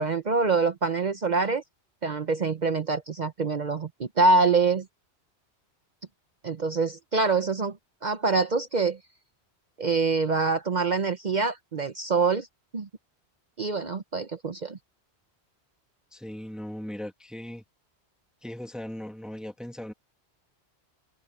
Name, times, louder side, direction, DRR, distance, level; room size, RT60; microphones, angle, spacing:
voice 1, 0.0-1.6 2.0-4.8 6.4-7.8 8.0-9.0 9.8-12.5 12.7-12.9 13.6-14.8, right 4 dB, 45° right, 0.9 m, -25 dB
voice 2, 16.1-17.6 18.4-19.9, left 1 dB, ahead, 1.9 m, -38 dB
omnidirectional pair, 1.1 m